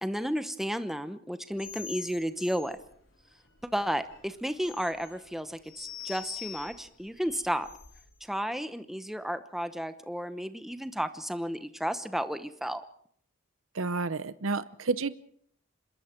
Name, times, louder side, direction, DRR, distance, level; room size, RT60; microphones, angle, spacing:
voice 1, 0.0-2.8 3.7-7.7 8.2-12.8, equal, ahead, 10 dB, 0.9 m, -33 dB
sound 1, 1.5-8.2, left 9 dB, 60° left, 3.7 m, -46 dB
voice 2, 13.7-15.1, right 4 dB, 70° right, 15 dB, 0.8 m, -30 dB
26.5 x 22.0 x 4.5 m, 0.63 s
head